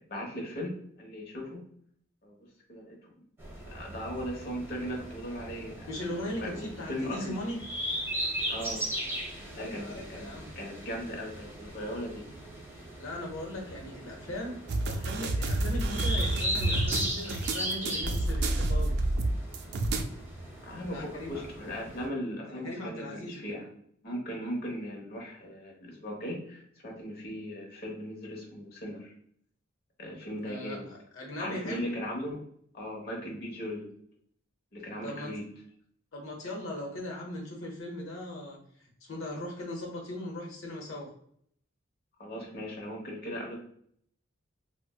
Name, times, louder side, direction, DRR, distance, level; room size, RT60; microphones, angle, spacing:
voice 1, 0.1-1.6 2.2-3.2 3.6-5.9 6.4-7.4 8.5-8.9 9.4-12.3 20.6-23.7 24.0-29.1 30.0-30.9 31.4-32.4 32.7-33.9 34.7-35.5 42.2-43.6, equal, 50° left, 0 dB, 1.0 m, -38 dB
sound 1, 3.4-22.1, equal, 10° right, 0.8 m, -38 dB
voice 2, 5.9-7.6 9.5-10.5 13.0-18.9 20.1-20.2 20.8-21.4 22.5-23.6 30.4-31.8 35.0-35.3 36.1-41.1, left 1 dB, 75° left, -1 dB, 1.0 m, -39 dB
sound 2, 14.7-20.0, right 2 dB, 55° right, 0.4 m, -29 dB
4.2 x 2.1 x 2.3 m, 0.65 s
head